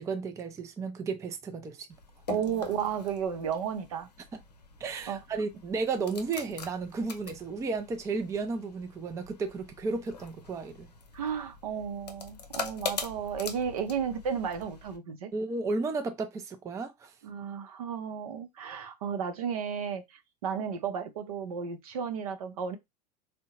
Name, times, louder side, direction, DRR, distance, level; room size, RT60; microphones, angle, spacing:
voice 1, 0.0-1.9 4.8-10.9 15.3-17.1, right 4 dB, 15° right, 0.4 m, -33 dB
sound 1, 1.9-15.0, left 5 dB, 75° left, 0.6 m, -43 dB
voice 2, 2.3-4.1 5.1-5.2 11.1-15.3 17.2-22.8, right 7 dB, 60° right, 0.7 m, -33 dB
3.5 x 2.2 x 2.8 m
figure-of-eight pair, 80°, 21 cm